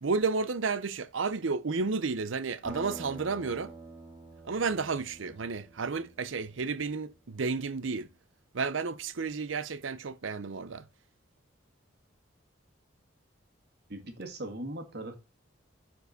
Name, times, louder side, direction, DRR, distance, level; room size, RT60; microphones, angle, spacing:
voice 1, 0.0-3.7 4.4-8.1 8.5-10.8, right 4 dB, 80° right, 0.7 m, -32 dB
Acoustic guitar, 2.6-7.5, right 2 dB, 10° right, 2.4 m, -48 dB
voice 2, 13.9-15.2, right 1 dB, 55° right, 1.8 m, -39 dB
9.3 x 4.7 x 4.1 m
head